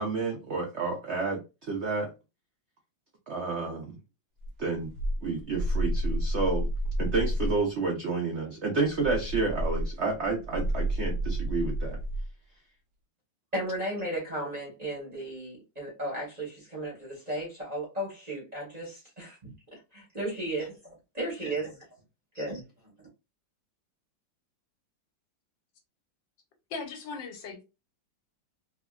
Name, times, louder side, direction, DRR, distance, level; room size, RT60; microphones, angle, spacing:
voice 1, 0.0-1.4 1.7-2.1 3.3-3.9 4.6-4.9 5.2-6.7 7.0-12.0, right 3 dB, 90° right, 0.6 m, -30 dB
sound 1, 4.4-7.6 8.8-12.3, equal, 70° right, 1.0 m, -30 dB
voice 2, 13.5-21.8 22.3-22.9, right 1 dB, 35° right, 0.7 m, -35 dB
voice 3, 26.7-27.7, left 4 dB, 90° left, 1.5 m, -38 dB
3.4 x 2.1 x 2.2 m
omnidirectional pair, 2.0 m